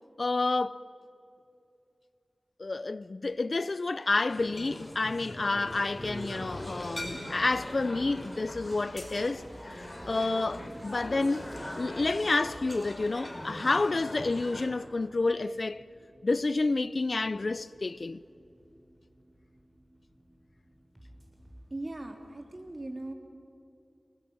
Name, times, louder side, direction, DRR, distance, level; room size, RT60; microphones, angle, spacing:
voice 1, 0.2-0.8 2.6-11.5 11.8-15.8 16.2-18.2, left 3 dB, 65° left, 0.6 m, -29 dB
sound 1, 4.3-14.7, left 1 dB, 25° left, 5.4 m, -41 dB
sound 2, 5.7-21.7, equal, 25° right, 7.8 m, -55 dB
voice 2, 21.7-23.1, right 2 dB, 45° right, 3.1 m, -39 dB
29.5 x 19.0 x 9.4 m
wide cardioid pair, 45°, 0 cm